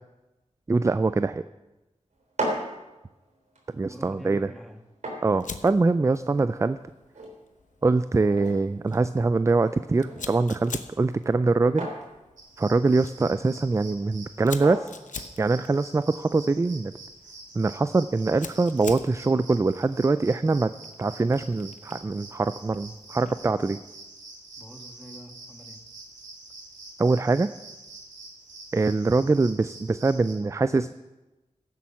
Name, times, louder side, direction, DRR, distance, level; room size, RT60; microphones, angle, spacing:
voice 1, 0.7-1.4 3.8-4.5 5.2-6.8 7.8-11.9 12.6-14.9 15.4-16.9 17.6-20.7 21.0-23.8 27.0-27.5 28.7-30.9, right 3 dB, 25° right, 13 dB, 0.3 m, -23 dB
sound 1, 2.1-16.0, right 1 dB, 70° right, 3.5 m, -40 dB
voice 2, 3.8-4.8 24.6-25.8, right 1 dB, ahead, 4 dB, 1.7 m, -45 dB
Fire, 5.4-23.6, left 5 dB, 85° left, 0.8 m, -46 dB
sound 2, 12.4-30.3, right 2 dB, 85° right, 3.0 m, -46 dB
15.5 x 8.5 x 5.9 m, 1.1 s
wide cardioid pair, 75°, 13 cm